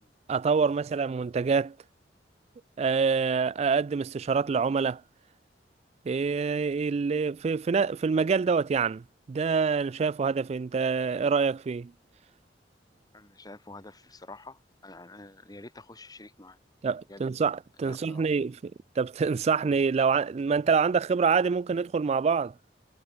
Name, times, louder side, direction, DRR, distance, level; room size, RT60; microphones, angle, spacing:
voice 1, 0.3-1.7 2.8-5.0 6.1-11.9 16.8-22.5, right 5 dB, 35° right, 0.3 m, -26 dB
voice 2, 13.1-16.6 17.1-17.2 17.8-18.2, left 2 dB, 20° left, 1.7 m, -48 dB
head